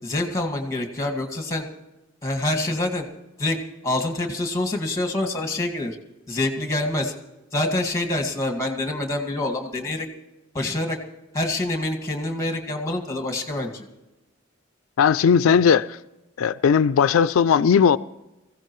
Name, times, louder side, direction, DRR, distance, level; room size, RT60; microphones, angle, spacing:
voice 1, 0.0-1.7 2.2-3.0 3.4-6.0 6.3-7.1 7.5-10.1 10.5-11.0 11.3-13.8, left 2 dB, 15° left, 2.0 m, -26 dB
voice 2, 15.0-16.0 16.4-18.0, left 7 dB, 90° left, 0.4 m, -17 dB
22.5 x 16.0 x 3.1 m
head